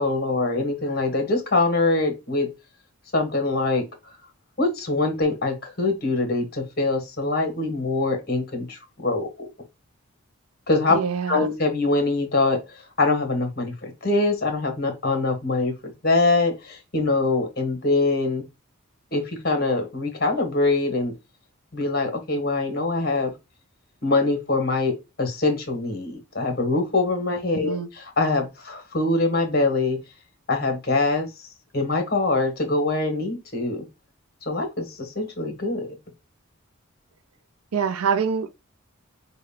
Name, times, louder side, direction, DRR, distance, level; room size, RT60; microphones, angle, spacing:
voice 1, 0.0-2.5 3.1-3.8 4.6-9.5 10.7-11.0 11.3-18.4 19.1-21.1 21.7-23.3 24.0-30.0 30.5-31.3 31.7-33.9 34.5-36.0, left 3 dB, 45° left, 1.2 m, -24 dB
voice 2, 10.9-11.5 27.6-27.9 37.7-38.5, right 6 dB, 90° right, 0.5 m, -25 dB
4.8 x 2.2 x 3.5 m
head